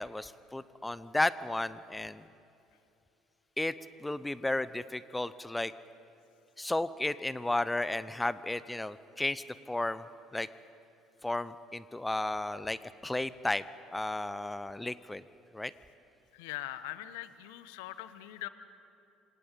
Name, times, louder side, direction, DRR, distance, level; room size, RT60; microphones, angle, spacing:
voice 1, 0.0-2.3 3.6-3.7 4.0-5.7 6.6-10.1 10.3-10.5 11.2-13.6 13.9-15.2 15.5-15.7, left 2 dB, 10° left, 16 dB, 0.8 m, -33 dB
voice 2, 16.3-18.5, left 15 dB, 70° left, 13 dB, 1.0 m, -41 dB
27.5 x 26.5 x 5.3 m, 2.8 s
figure-of-eight pair, 60°, 0 cm